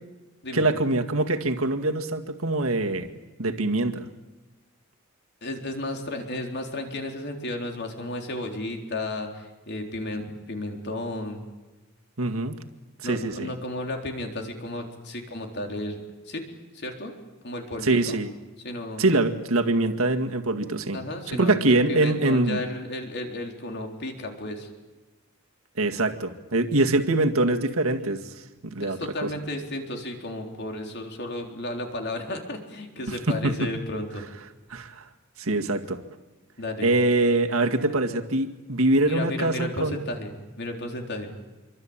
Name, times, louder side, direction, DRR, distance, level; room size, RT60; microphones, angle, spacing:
voice 1, 0.5-3.1 3.4-4.1 12.2-12.6 13.0-13.5 17.8-18.3 19.0-21.0 21.3-22.6 25.8-28.3 28.6-29.3 33.1-33.7 34.7-35.1 35.4-36.0 36.8-40.0, right 2 dB, 85° right, 4 dB, 2.0 m, -24 dB
voice 2, 5.4-11.4 13.0-16.4 16.7-17.1 17.4-18.2 18.6-19.1 20.9-24.7 28.8-34.2 36.6-36.9 39.1-40.3 40.6-41.3, left 1 dB, 55° left, 3 dB, 3.9 m, -33 dB
27.0 x 24.5 x 8.8 m, 1.1 s
head